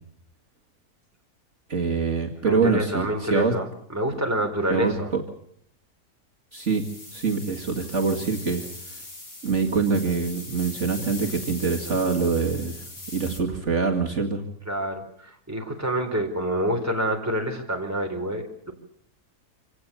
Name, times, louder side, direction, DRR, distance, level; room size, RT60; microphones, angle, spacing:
voice 1, 1.7-3.5 4.7-5.2 6.5-6.8 7.1-8.7 9.4-14.4, right 5 dB, 50° right, 0 dB, 2.5 m, -25 dB
voice 2, 2.5-5.1 14.7-18.7, right 1 dB, 10° right, 3 dB, 3.9 m, -27 dB
sound 1, 6.5-13.4, left 2 dB, 65° left, 4.5 m, -40 dB
26.5 x 18.0 x 7.0 m, 0.69 s
omnidirectional pair, 1.6 m